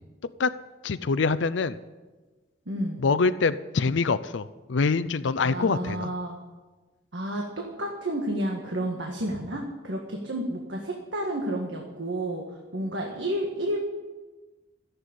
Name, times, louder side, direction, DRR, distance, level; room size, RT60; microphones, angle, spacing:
voice 1, 0.8-1.8 3.0-6.1, left 4 dB, 80° left, 14 dB, 0.5 m, -25 dB
voice 2, 2.6-3.0 5.4-6.3 7.1-13.8, right 1 dB, 80° right, 0 dB, 1.8 m, -31 dB
15.0 x 8.1 x 10.0 m, 1.2 s
head